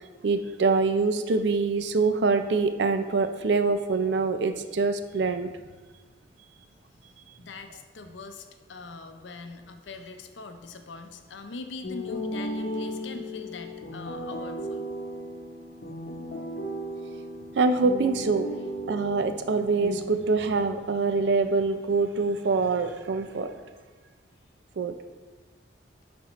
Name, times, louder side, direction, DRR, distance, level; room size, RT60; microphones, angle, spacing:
voice 1, 0.2-5.5 17.6-18.5 18.9-23.5 24.8-24.9, right 4 dB, 75° right, 9 dB, 0.4 m, -25 dB
voice 2, 7.4-14.9, left 3 dB, 90° left, 7 dB, 0.6 m, -42 dB
sound 1, 11.8-20.0, equal, 60° left, 0.8 m, -35 dB
10.5 x 4.3 x 3.1 m, 1.3 s
head